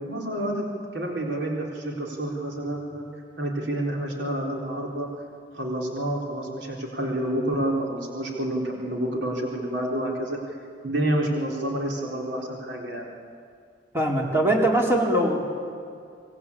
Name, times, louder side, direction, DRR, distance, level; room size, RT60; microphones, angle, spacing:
voice 1, 0.0-3.1 3.4-5.1 5.5-10.6 10.8-13.0, right 1 dB, 75° right, -1 dB, 4.1 m, -29 dB
voice 2, 13.9-15.4, right 1 dB, 15° right, -2 dB, 4.4 m, -21 dB
27.0 x 22.0 x 8.6 m, 2.3 s
head